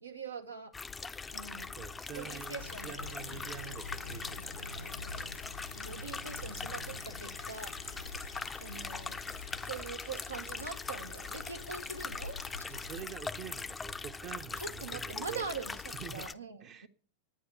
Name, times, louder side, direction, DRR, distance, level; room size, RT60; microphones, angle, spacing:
voice 1, 0.0-0.8 1.3-1.7 2.1-3.0 5.7-7.7 8.6-9.2 9.6-12.4 14.6-16.9, right 4 dB, 80° right, 0.9 m, -43 dB
sound 1, 0.7-16.3, left 4 dB, 15° left, 0.5 m, -41 dB
voice 2, 1.7-5.0 11.7-11.8 12.7-15.5 15.9-16.3 16.6-16.9, right 9 dB, 35° right, 0.8 m, -46 dB
sound 2, 2.6-13.0, left 2 dB, 80° left, 1.0 m, -47 dB
10.0 x 9.6 x 7.0 m
figure-of-eight pair, 90°, 0 cm